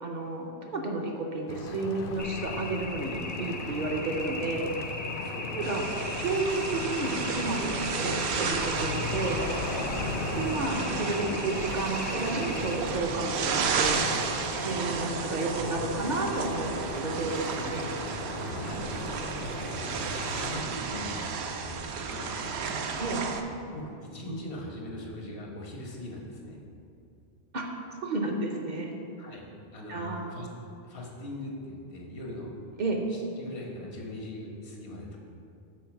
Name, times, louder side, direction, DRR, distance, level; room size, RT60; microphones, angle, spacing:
voice 1, 0.0-4.7 5.5-5.8 6.2-8.0 8.3-9.5 10.4-14.0 14.5-17.9 23.0-23.2 27.5-27.7 28.0-28.9 29.9-30.4 32.8-33.0, right 2 dB, 50° right, 1 dB, 0.7 m, -32 dB
sound 1, 1.5-20.6, left 4 dB, 65° left, 0.7 m, -38 dB
sound 2, 2.2-12.8, left 2 dB, 30° left, 0.3 m, -39 dB
voice 2, 5.2-5.9 9.9-10.2 18.4-19.2 19.6-20.0 20.3-22.3 23.7-26.6 29.2-29.5 29.7-30.0 30.3-30.5 30.8-32.5 33.1-35.2, left 1 dB, 85° left, -1 dB, 1.5 m, -41 dB
sound 3, 5.6-23.4, right 5 dB, 80° right, 0.8 m, -32 dB
6.2 x 4.5 x 5.9 m, 2.6 s
omnidirectional pair, 1.1 m